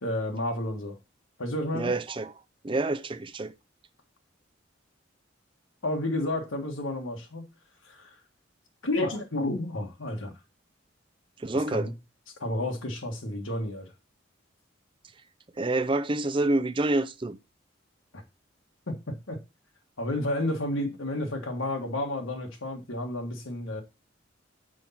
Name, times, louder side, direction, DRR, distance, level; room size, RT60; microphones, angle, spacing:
voice 1, 0.0-1.0 1.4-1.9 5.8-7.4 7.8-8.2 8.8-10.3 11.7-11.9 12.4-13.9 18.1-18.2 18.9-19.4 20.0-23.8, left 1 dB, 90° left, 1.6 m, -31 dB
voice 2, 1.7-2.3 2.6-3.5 11.4-11.9 15.6-17.4, right 2 dB, 25° right, 0.5 m, -27 dB
6.3 x 5.4 x 5.7 m
head